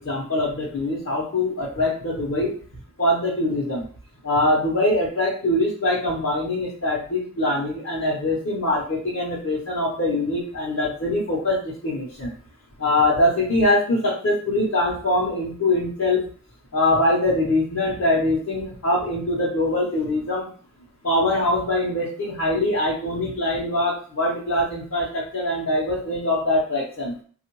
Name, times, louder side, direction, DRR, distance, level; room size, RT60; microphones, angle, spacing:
voice 1, 0.0-2.6 3.0-3.9 4.2-12.3 12.8-16.2 16.7-20.5 21.0-27.1, left 1 dB, 65° left, -6 dB, 0.8 m, -23 dB
3.6 x 2.4 x 3.0 m, 0.44 s
head